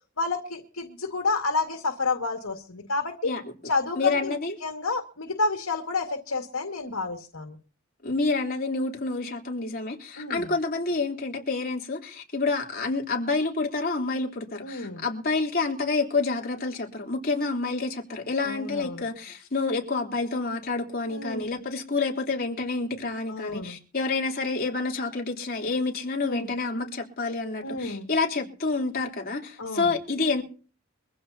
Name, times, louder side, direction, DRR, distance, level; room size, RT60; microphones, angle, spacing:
voice 1, 0.2-3.3 3.6-7.6 10.2-10.5 14.6-15.0 18.4-19.1 21.1-21.5 23.3-23.8 26.2-26.5 27.6-28.1 29.6-29.9, left 3 dB, 90° left, 2.2 m, -30 dB
voice 2, 4.0-4.5 8.0-30.4, left 3 dB, 45° left, 3.7 m, -28 dB
23.5 x 15.5 x 2.9 m
head